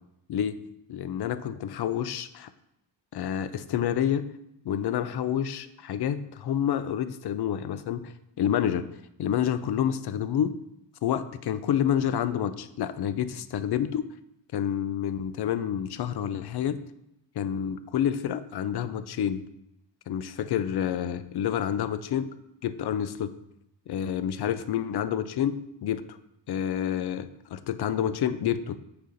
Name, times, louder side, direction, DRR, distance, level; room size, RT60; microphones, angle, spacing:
voice 1, 0.9-2.3 3.1-4.3 4.6-8.1 8.4-8.9 9.2-10.6 11.0-14.1 14.5-16.8 17.4-19.4 20.1-22.3 22.6-23.3 23.9-26.0 26.5-28.8, left 9 dB, 60° left, 13 dB, 0.5 m, -28 dB
7.8 x 4.1 x 3.9 m, 0.83 s
wide cardioid pair, 145°, 45 cm